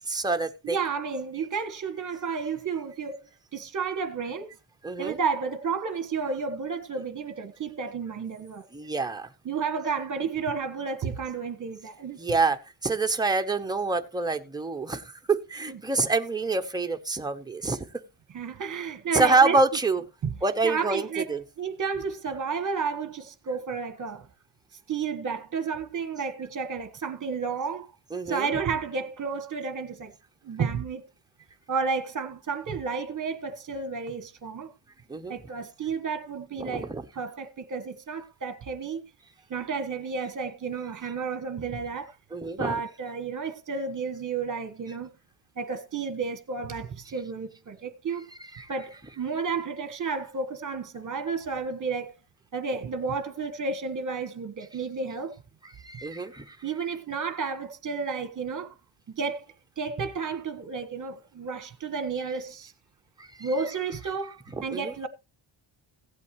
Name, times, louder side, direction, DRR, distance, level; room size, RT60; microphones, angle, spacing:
voice 1, 0.1-0.8 4.8-5.2 8.7-9.3 12.2-17.8 19.1-20.0 20.4-21.4 28.1-28.5 35.1-35.4 36.6-37.0 42.3-42.8 48.4-48.7 55.8-56.6 63.2-63.5 64.5-64.9, right 3 dB, 10° right, 0.9 m, -26 dB
voice 2, 0.6-3.2 3.5-4.5 5.0-8.6 9.4-12.2 15.7-15.8 18.3-19.6 20.2-20.3 20.6-21.3 21.6-24.3 24.9-27.9 28.3-30.1 30.4-31.0 31.7-34.7 35.3-39.0 39.5-42.1 42.6-45.1 45.6-48.3 48.7-52.1 52.5-55.4 56.6-58.7 59.1-59.5 59.8-62.7 63.4-65.1, right 5 dB, 40° right, 1.4 m, -31 dB
16.5 x 8.3 x 3.1 m
cardioid pair, 140°, 48 cm